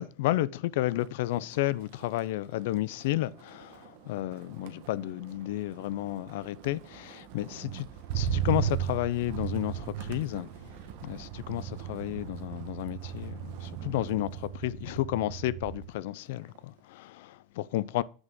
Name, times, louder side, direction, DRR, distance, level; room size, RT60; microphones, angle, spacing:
voice 1, 0.0-7.9 8.1-18.0, left 15 dB, 70° left, 0.4 m, -32 dB
Motor vehicle (road), 0.9-1.2 1.5-16.0 16.4-16.8, right 10 dB, 60° right, 1.1 m, -37 dB
7.9 x 6.1 x 3.6 m
supercardioid pair, 165°, 0 cm